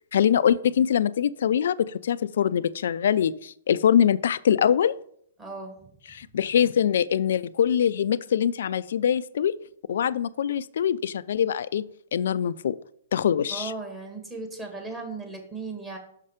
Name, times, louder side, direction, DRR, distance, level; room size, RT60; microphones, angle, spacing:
voice 1, 0.1-4.9 6.1-9.6 9.9-11.8 12.1-12.8 13.1-13.7, left 9 dB, 70° left, 15 dB, 0.3 m, -23 dB
voice 2, 5.4-5.8 13.5-16.0, right 3 dB, 15° right, 1 dB, 2.0 m, -37 dB
6.6 x 5.5 x 5.0 m, 0.65 s
hypercardioid pair, 125°, 0 cm